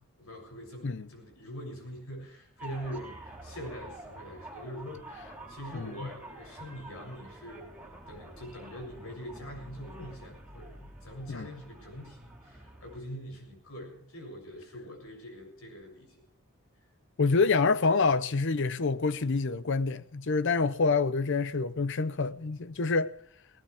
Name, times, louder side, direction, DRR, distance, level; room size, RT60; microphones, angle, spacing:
voice 1, 0.2-16.2, equal, 70° left, 7.4 m, -44 dB
sound 1, 2.6-13.0, right 1 dB, 5° right, 3.4 m, -47 dB
voice 2, 5.7-6.1 11.3-11.5 17.2-23.1, left 4 dB, 55° left, 0.7 m, -27 dB
20.0 x 18.5 x 3.5 m
head